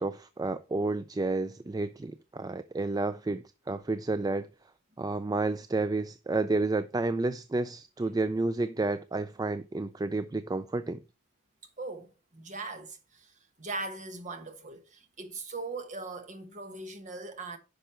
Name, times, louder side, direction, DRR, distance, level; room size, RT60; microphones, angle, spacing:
voice 1, 0.0-4.5 5.0-11.0, right 3 dB, 20° right, 0.3 m, -30 dB
voice 2, 11.8-17.6, right 3 dB, 35° right, 1.4 m, -40 dB
10.0 x 5.5 x 4.3 m
head